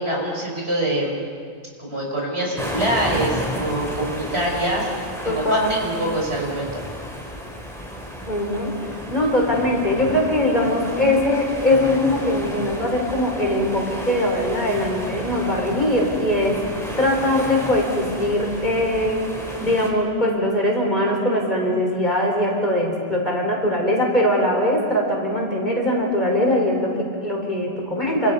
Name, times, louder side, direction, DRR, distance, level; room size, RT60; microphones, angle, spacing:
voice 1, 0.0-1.5 1.8-5.0 5.3-6.8, right 1 dB, 50° right, -1 dB, 5.6 m, -25 dB
sound 1, 2.6-19.9, equal, ahead, 3.9 m, -33 dB
voice 2, 5.2-5.8 8.2-16.6 17.0-19.2 19.6-28.3, left 1 dB, 35° left, -1 dB, 4.7 m, -21 dB
29.0 x 26.5 x 5.6 m, 2.1 s
omnidirectional pair, 1.3 m